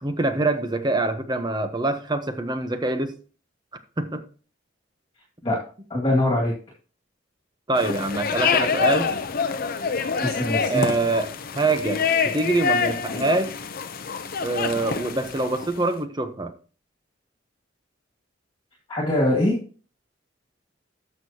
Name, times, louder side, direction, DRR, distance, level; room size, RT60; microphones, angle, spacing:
voice 1, 0.0-3.1 4.0-4.2 7.7-9.1 10.7-11.3 11.5-13.5 14.4-16.5, right 2 dB, 20° right, 9 dB, 0.9 m, -25 dB
voice 2, 5.9-6.5 10.2-10.8 18.9-19.6, left 1 dB, 25° left, -2 dB, 2.1 m, -22 dB
sound 1, 7.8-15.9, left 5 dB, 50° left, 0.7 m, -26 dB
12.5 x 6.5 x 2.9 m, 0.39 s
head